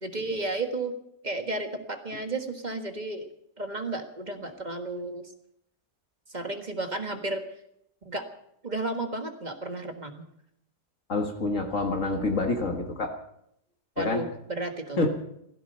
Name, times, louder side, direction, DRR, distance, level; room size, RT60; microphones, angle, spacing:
voice 1, 0.0-1.0 1.2-3.3 3.6-5.3 6.3-7.4 8.0-8.3 8.6-10.3 14.0-15.0, right 2 dB, 25° right, 6 dB, 1.5 m, -33 dB
voice 2, 11.1-13.1 14.0-14.2 15.0-15.1, left 2 dB, 50° left, 3 dB, 2.0 m, -27 dB
16.5 x 15.0 x 5.5 m, 0.75 s
omnidirectional pair, 1.8 m